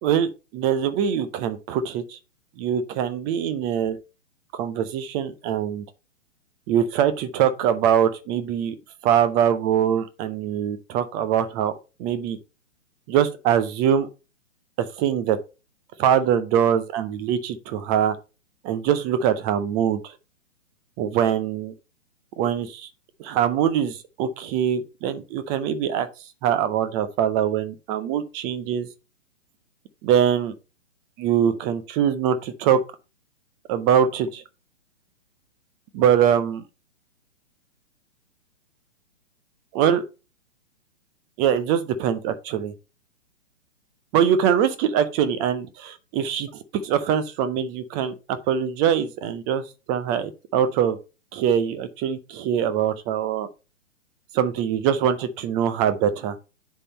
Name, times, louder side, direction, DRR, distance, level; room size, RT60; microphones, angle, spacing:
voice 1, 0.0-2.2 2.6-4.0 4.5-5.8 6.7-8.8 9.0-11.7 12.0-12.4 13.1-14.1 15.0-15.4 16.0-18.2 18.6-20.1 21.0-21.7 22.4-22.9 23.2-26.1 26.4-28.9 30.0-30.5 31.2-32.8 33.7-34.4 35.9-36.6 39.7-40.0 41.4-42.7 44.1-46.5 46.8-48.1 48.5-49.6 49.9-51.0 51.3-53.5 54.3-56.4, right 9 dB, 10° right, 0.4 m, -23 dB
9.8 x 3.7 x 4.0 m
figure-of-eight pair, 120°, 36 cm